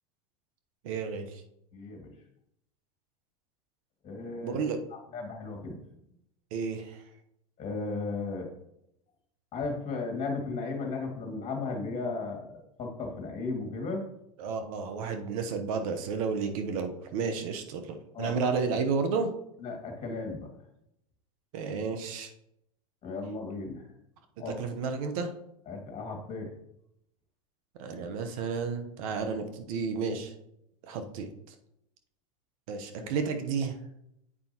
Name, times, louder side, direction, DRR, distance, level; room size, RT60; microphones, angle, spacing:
voice 1, 0.8-1.4 4.4-4.8 6.5-7.0 14.4-19.3 21.5-22.3 24.5-25.3 27.8-30.3 30.8-31.5 32.7-33.8, right 5 dB, 65° right, 6 dB, 1.0 m, -32 dB
voice 2, 1.7-2.1 4.0-4.6 5.1-5.7 7.6-8.5 9.5-14.0 18.1-18.4 19.6-20.5 23.0-23.8 24.4-24.5 25.7-26.5, left 3 dB, 35° left, 2 dB, 2.3 m, -35 dB
8.6 x 5.3 x 3.0 m, 0.78 s
hypercardioid pair, 100°, 19 cm